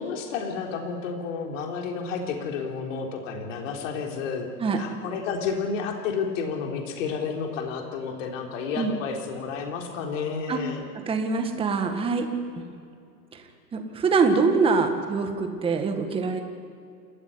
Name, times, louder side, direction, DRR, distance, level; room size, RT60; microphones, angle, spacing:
voice 1, 0.0-4.5 4.7-10.9, left 5 dB, 50° left, 2 dB, 3.8 m, -31 dB
voice 2, 4.6-4.9 8.8-8.9 10.5-10.6 10.9-12.3 12.6-12.7 13.3-13.4 13.7-16.4, right 4 dB, 10° right, 5 dB, 1.8 m, -24 dB
27.5 x 14.5 x 9.8 m, 2.4 s
hypercardioid pair, 150°, 50 cm